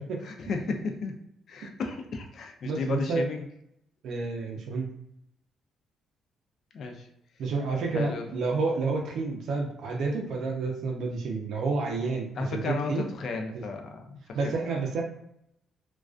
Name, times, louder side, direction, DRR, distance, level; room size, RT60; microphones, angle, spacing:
voice 1, 0.2-1.2 1.5-3.5 6.7-7.1 7.9-8.3 12.4-14.4, left 4 dB, 60° left, 4 dB, 0.4 m, -33 dB
voice 2, 2.7-3.3 4.0-4.9 7.4-13.0 13.5-13.6 14.3-15.0, right 4 dB, 75° right, 0 dB, 0.4 m, -29 dB
2.4 x 2.2 x 2.3 m, 0.77 s
cardioid pair, 90°, 0 cm